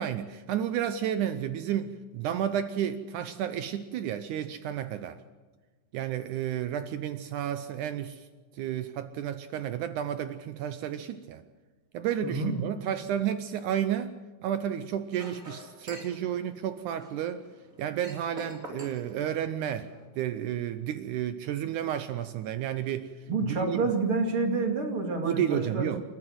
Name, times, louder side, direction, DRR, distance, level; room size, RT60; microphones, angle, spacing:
voice 1, 0.0-5.2 5.9-8.3 8.5-11.4 11.9-14.1 14.4-17.4 17.8-19.9 20.2-23.1 23.5-23.8 25.2-26.0, right 10 dB, 75° right, 11 dB, 2.0 m, -31 dB
voice 2, 12.2-12.6 23.3-25.9, right 3 dB, 40° right, 3 dB, 2.9 m, -28 dB
Chink clink, 15.1-20.1, equal, 25° right, 3.4 m, -48 dB
29.0 x 12.5 x 7.7 m, 1.3 s
omnidirectional pair, 4.0 m